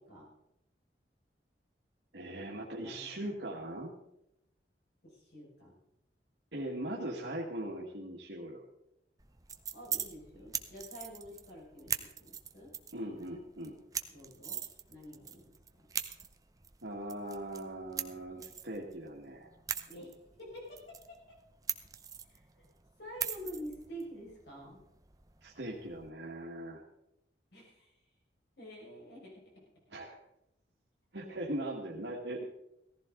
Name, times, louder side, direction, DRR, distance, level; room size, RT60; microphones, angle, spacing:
voice 1, 2.1-4.0 6.5-8.6 12.9-13.8 16.8-19.5 25.4-26.8 29.9-30.2 31.1-32.4, right 1 dB, 75° right, -2 dB, 2.0 m, -40 dB
voice 2, 2.8-3.3 5.0-5.8 9.7-12.7 14.1-14.6 14.9-15.9 19.9-21.4 22.3-22.6 23.0-24.8 27.5-27.9 28.6-29.5, equal, 65° left, -3 dB, 6.0 m, -48 dB
sound 1, 9.2-26.1, right 7 dB, 20° right, 0.7 m, -43 dB
17.0 x 15.0 x 3.9 m, 0.84 s
head